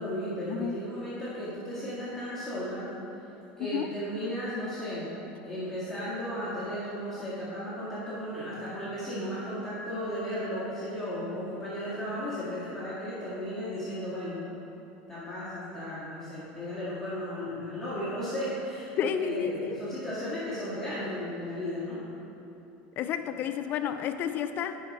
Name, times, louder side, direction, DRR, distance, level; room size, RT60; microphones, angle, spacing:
voice 1, 0.0-2.9 3.6-5.1 5.4-14.4 15.1-22.0, equal, 10° left, -11 dB, 1.9 m, -35 dB
voice 2, 3.6-3.9 19.0-19.8 23.0-24.8, left 8 dB, 40° left, 9 dB, 0.4 m, -31 dB
10.0 x 5.1 x 4.2 m, 2.9 s
supercardioid pair, 135°, 5 cm